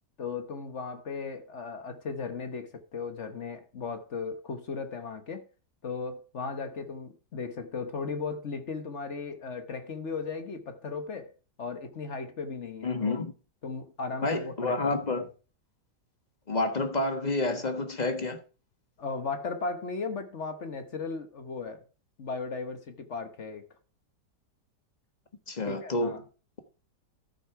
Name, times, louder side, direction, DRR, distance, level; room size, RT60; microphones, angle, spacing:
voice 1, 0.2-5.4 5.8-11.3 11.6-13.2 13.6-15.3 19.0-21.8 22.2-23.6 25.7-26.2, left 4 dB, 45° left, 1.3 m, -36 dB
voice 2, 12.8-13.3 14.2-15.3 16.5-18.4 25.5-26.2, left 2 dB, 25° left, 1.3 m, -29 dB
13.5 x 6.1 x 4.7 m
omnidirectional pair, 1.9 m